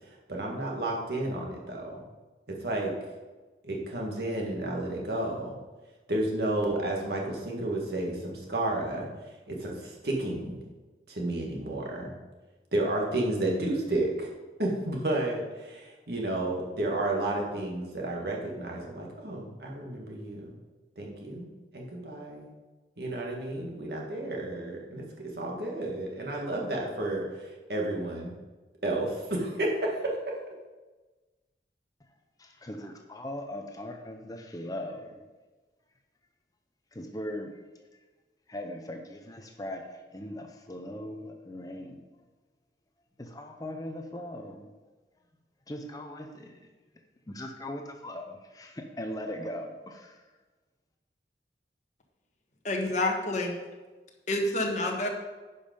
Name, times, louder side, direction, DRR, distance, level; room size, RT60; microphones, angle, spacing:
voice 1, 0.3-2.0 2.5-2.9 3.6-5.6 6.1-9.1 9.5-10.6 11.1-12.1 12.7-14.3 14.6-20.5 21.0-21.5 21.7-22.5 23.0-27.4 27.7-28.3 28.8-30.3, right 1 dB, 60° right, -1 dB, 1.9 m, -31 dB
voice 2, 32.4-35.2 36.9-37.5 38.5-42.1 43.2-44.7 45.7-46.7 47.3-50.2, left 1 dB, 20° left, 4 dB, 0.7 m, -39 dB
voice 3, 52.6-53.5 54.3-55.1, left 1 dB, 45° left, 1 dB, 1.3 m, -28 dB
9.7 x 5.4 x 5.3 m, 1.3 s
head